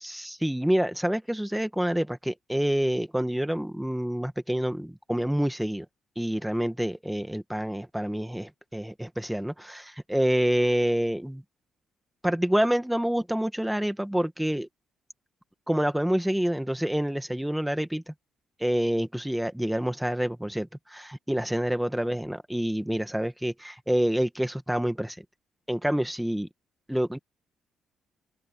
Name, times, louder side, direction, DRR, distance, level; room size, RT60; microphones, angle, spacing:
voice 1, 0.0-5.9 6.2-11.4 12.2-14.7 15.7-18.1 18.6-25.2 25.7-26.5 26.9-27.2, equal, 5° right, 1.9 m, -27 dB
open air
cardioid pair, 90°, 0 cm